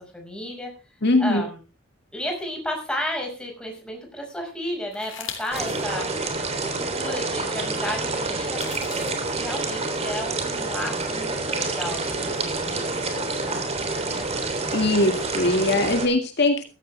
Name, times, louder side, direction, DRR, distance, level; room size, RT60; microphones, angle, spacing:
voice 1, 0.1-0.7 1.2-1.6 2.1-6.1 6.5-14.3, left 1 dB, 5° left, 1 dB, 5.7 m, -33 dB
voice 2, 1.0-1.4 14.7-16.6, left 2 dB, 60° left, 5 dB, 2.1 m, -21 dB
sound 1, 4.9-5.8 6.3-6.4 8.4-9.1, left 8 dB, 75° left, 3.5 m, -38 dB
sound 2, 5.5-16.1, right 3 dB, 35° right, 3.3 m, -28 dB
15.5 x 14.0 x 3.4 m, 0.31 s
head